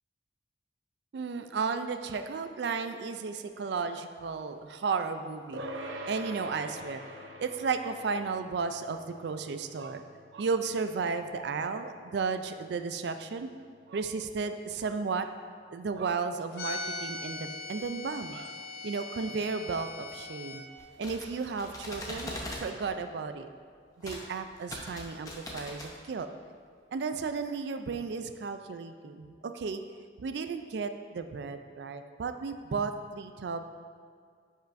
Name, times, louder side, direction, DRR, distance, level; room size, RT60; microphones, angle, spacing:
voice 1, 1.1-7.0 7.4-10.0 10.3-13.5 13.9-15.3 15.7-18.5 18.8-20.6 21.0-23.5 24.0-26.3 26.9-29.8 30.2-33.6, right 5 dB, 60° right, 8 dB, 0.3 m, -34 dB
sound 1, 5.5-15.2, equal, 80° right, 0.8 m, -46 dB
sound 2, 16.5-20.6, left 3 dB, 50° left, 0.6 m, -40 dB
sound 3, 20.8-22.7 24.0-24.3 24.6-25.9, left 1 dB, 20° left, 0.8 m, -40 dB
10.0 x 5.6 x 2.6 m, 2.1 s
head